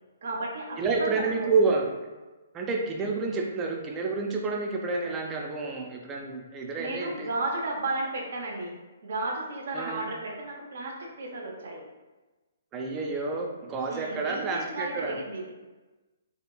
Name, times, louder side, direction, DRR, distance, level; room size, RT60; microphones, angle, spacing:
voice 1, 0.2-1.1 1.4-1.5 6.8-8.7 9.0-11.8 13.9-15.4, right 2 dB, 55° right, -1 dB, 0.7 m, -33 dB
voice 2, 0.8-1.9 2.5-7.3 9.7-10.1 12.7-15.2, right 4 dB, 20° right, 1 dB, 0.4 m, -29 dB
3.3 x 2.8 x 2.3 m, 1.2 s
figure-of-eight pair, 125°, 0 cm